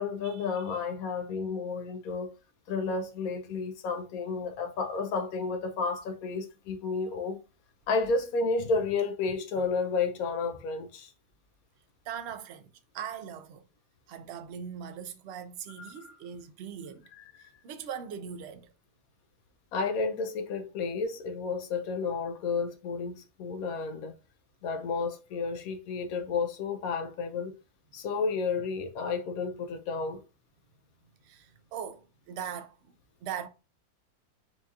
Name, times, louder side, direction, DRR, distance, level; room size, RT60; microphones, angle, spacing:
voice 1, 0.0-2.3 2.7-7.4 7.9-11.1 15.8-16.1 17.2-17.5 19.7-24.1 24.6-27.5 27.9-30.2, left 4 dB, 75° left, 1.0 m, -31 dB
voice 2, 12.1-12.7 12.9-13.7 14.1-17.0 17.4-18.7 31.2-32.9 33.2-33.5, right 8 dB, 75° right, 0.6 m, -40 dB
4.4 x 2.3 x 2.8 m
omnidirectional pair, 1.6 m